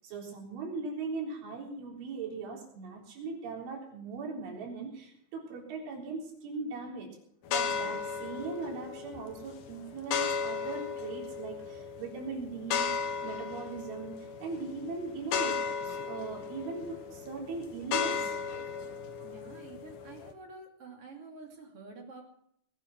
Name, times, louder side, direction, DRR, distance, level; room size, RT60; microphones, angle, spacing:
voice 1, 0.0-7.1 7.5-12.9 13.2-15.6 15.8-18.4, right 4 dB, 75° right, -1 dB, 6.4 m, -39 dB
sound 1, 7.5-20.3, left 6 dB, 70° left, 2.0 m, -36 dB
voice 2, 19.2-22.2, right 3 dB, 35° right, 2 dB, 2.9 m, -48 dB
21.0 x 9.7 x 6.1 m, 0.71 s
omnidirectional pair, 5.5 m